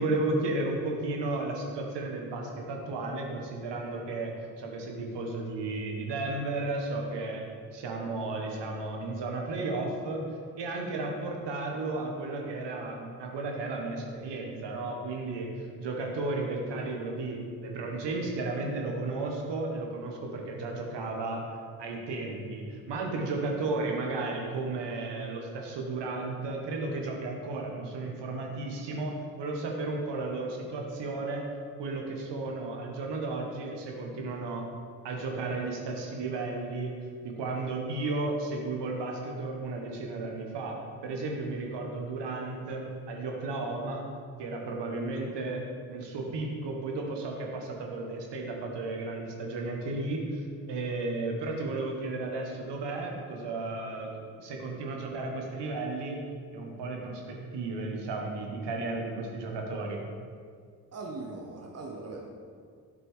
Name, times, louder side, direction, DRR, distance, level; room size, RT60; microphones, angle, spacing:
voice 1, 0.0-4.3 4.6-7.4 7.7-10.2 10.6-15.5 15.8-21.4 21.8-31.4 31.8-34.6 35.0-36.9 37.2-40.8 41.0-44.1 44.4-45.6 45.9-50.4 50.7-56.2 56.5-60.0, right 2 dB, 55° right, 1 dB, 1.5 m, -33 dB
voice 2, 60.9-62.3, right 3 dB, 30° right, 1 dB, 1.1 m, -40 dB
7.9 x 5.9 x 3.7 m, 2.1 s
hypercardioid pair, 45°, 48 cm